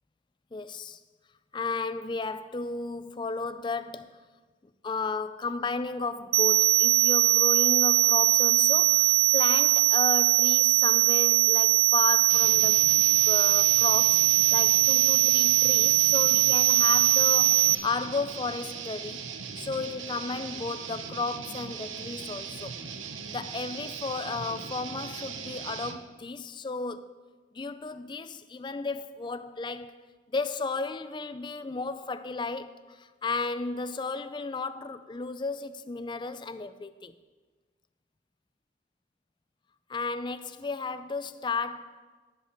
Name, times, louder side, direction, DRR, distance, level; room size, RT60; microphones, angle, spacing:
voice 1, 0.5-1.0 1.5-4.2 4.8-12.9 13.2-19.3 19.6-22.8 23.3-27.2 27.5-30.0 30.3-37.1 39.9-42.0, left 4 dB, 25° left, 0.4 m, -34 dB
sound 1, 6.3-17.7, right 18 dB, 50° right, 0.3 m, -21 dB
sound 2, 12.3-26.0, right 6 dB, 90° right, 0.9 m, -39 dB
17.5 x 5.8 x 5.7 m
head